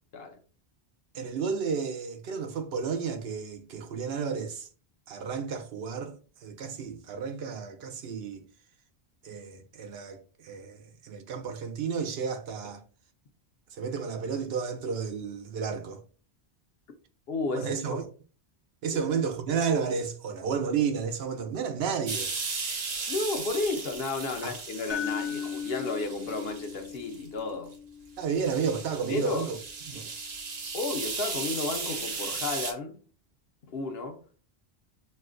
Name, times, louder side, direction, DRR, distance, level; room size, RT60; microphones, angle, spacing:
voice 1, 1.1-4.7 5.1-6.2 6.4-8.4 9.2-12.8 13.7-16.0 17.5-18.0 18.8-22.3 24.4-24.5 28.2-29.6 29.9-30.1, right 6 dB, 75° right, 0.8 m, -32 dB
voice 2, 17.3-18.0 18.9-19.0 23.1-27.7 29.1-29.5 30.7-33.0 33.6-34.2, left 3 dB, 70° left, 0.9 m, -32 dB
sound 1, 22.1-27.3 27.7-27.8 28.2-32.7, right 4 dB, 45° right, 0.7 m, -36 dB
sound 2, 24.9-29.0, left 8 dB, 20° left, 0.4 m, -38 dB
6.2 x 2.1 x 2.4 m
omnidirectional pair, 1.1 m